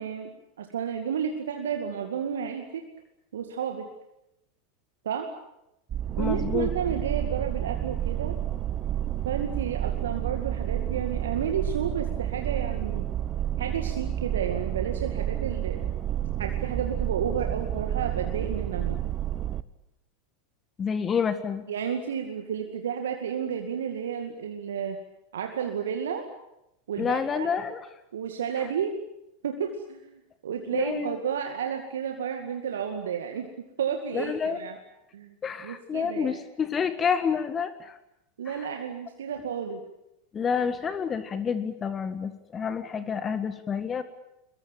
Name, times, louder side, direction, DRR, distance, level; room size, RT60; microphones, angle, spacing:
voice 1, 0.0-2.9 3.3-3.9 5.0-5.3 6.2-8.4 9.2-13.0 13.6-15.9 16.4-19.0 21.7-25.0 25.3-26.3 26.9-27.5 28.1-29.0 29.4-30.1 30.4-33.5 33.8-34.8 35.1-35.3 35.6-36.4 38.4-39.8, right 7 dB, 70° right, 4 dB, 2.2 m, -31 dB
sound 1, 5.9-19.6, right 11 dB, 30° right, 1.1 m, -30 dB
voice 2, 6.2-6.7 20.8-21.6 27.0-27.9 30.7-31.2 34.1-34.6 35.4-38.0 38.5-38.7 40.3-44.0, left 6 dB, 25° left, 11 dB, 1.8 m, -29 dB
22.5 x 22.5 x 9.0 m, 0.87 s
figure-of-eight pair, 85°, 0 cm